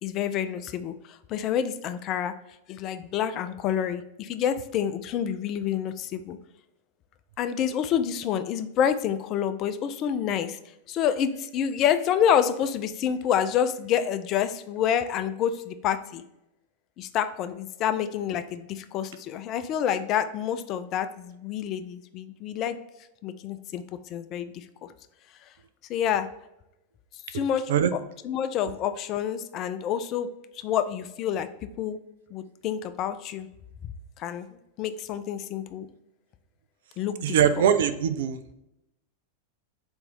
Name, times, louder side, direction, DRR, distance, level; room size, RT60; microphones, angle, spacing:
voice 1, 0.0-2.3 2.7-6.4 7.4-10.6 10.9-16.2 17.0-22.8 23.2-23.8 24.1-24.7 25.9-26.3 27.3-27.7 28.2-30.3 30.5-31.5 31.8-32.0 32.3-33.5 34.2-34.5 34.8-35.9 37.0-37.4, left 9 dB, 35° left, 10 dB, 0.3 m, -28 dB
voice 2, 37.2-38.4, right 8 dB, 55° right, 11 dB, 0.3 m, -22 dB
4.2 x 2.6 x 3.6 m, 0.88 s
figure-of-eight pair, 90°, 0 cm